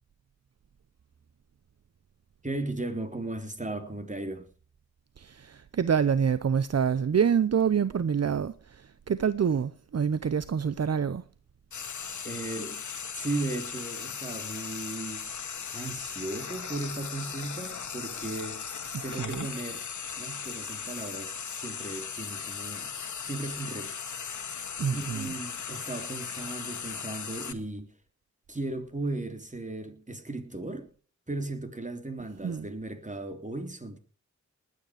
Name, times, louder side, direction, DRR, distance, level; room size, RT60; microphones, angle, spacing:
voice 1, 2.4-4.5 12.2-12.8 13.1-15.3 15.7-18.6 19.0-19.9 20.2-22.9 23.3-24.0 24.9-27.9 28.5-30.9 31.3-34.0, right 2 dB, 25° right, 3.5 m, -36 dB
voice 2, 5.2-11.2 18.9-19.5 24.8-25.3 32.4-32.7, right 7 dB, 60° right, 0.8 m, -27 dB
Frying (food), 11.7-27.5, left 6 dB, 80° left, 1.6 m, -38 dB
20.0 x 9.6 x 5.1 m
cardioid pair, 50°, 29 cm